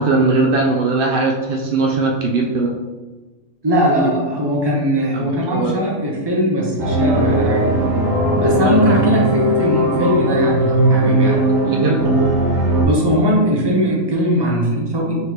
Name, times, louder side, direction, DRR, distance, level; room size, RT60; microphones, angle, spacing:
voice 1, 0.0-2.7 5.1-5.8 11.6-12.0, right 3 dB, 90° right, 1 dB, 0.4 m, -19 dB
voice 2, 3.6-7.7 8.4-11.4 12.8-15.2, equal, 25° right, -3 dB, 0.6 m, -19 dB
sound 1, 6.8-12.8, right 1 dB, 55° right, 1.0 m, -17 dB
4.2 x 3.3 x 2.9 m, 1.2 s
omnidirectional pair, 1.5 m